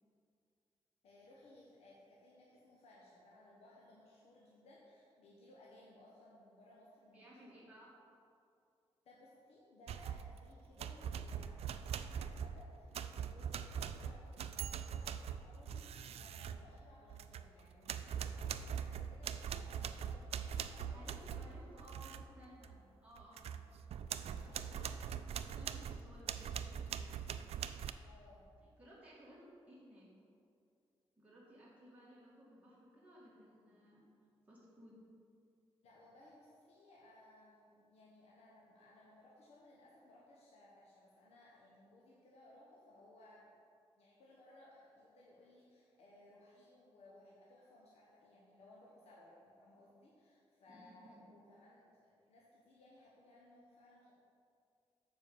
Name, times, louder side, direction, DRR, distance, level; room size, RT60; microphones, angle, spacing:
voice 1, 1.0-7.5 9.0-21.2 24.3-25.0 28.0-28.5 35.8-43.5 44.0-54.1, left 1 dB, 85° left, -5 dB, 1.2 m, -62 dB
voice 2, 7.1-7.9 20.6-23.5 24.4-27.5 28.8-30.1 31.2-34.1 34.5-35.0 50.7-51.3, equal, 15° right, -8 dB, 2.2 m, -59 dB
sound 1, 9.9-10.4 10.8-17.5 17.9-22.2 22.6-22.8 23.2-27.9, right 8 dB, 75° right, 0.4 m, -42 dB
7.4 x 5.0 x 6.9 m, 2.4 s
cardioid pair, 95°, 10 cm